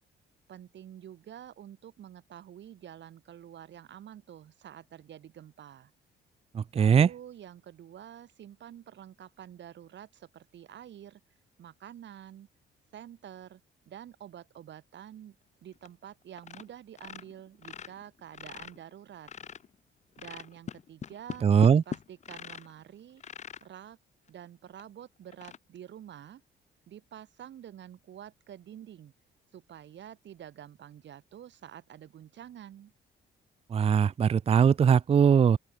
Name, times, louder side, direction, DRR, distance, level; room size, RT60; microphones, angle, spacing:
voice 1, 0.5-5.9 6.7-11.2 11.6-12.5 12.9-13.6 13.9-15.4 15.6-19.3 20.2-21.5 21.9-23.2 23.6-24.0 24.3-26.4 26.9-29.1 29.5-32.9, right 10 dB, 65° right, 2.5 m, -48 dB
voice 2, 6.5-7.1 21.4-21.8 33.7-35.6, right 7 dB, 30° right, 0.4 m, -21 dB
sound 1, 15.8-16.1 16.4-16.7 16.9-19.7 20.2-22.8 23.2-23.7 24.3-24.4 24.8-24.9 25.3-25.6, left 7 dB, 35° left, 0.5 m, -42 dB
open air
cardioid pair, 90°, 20 cm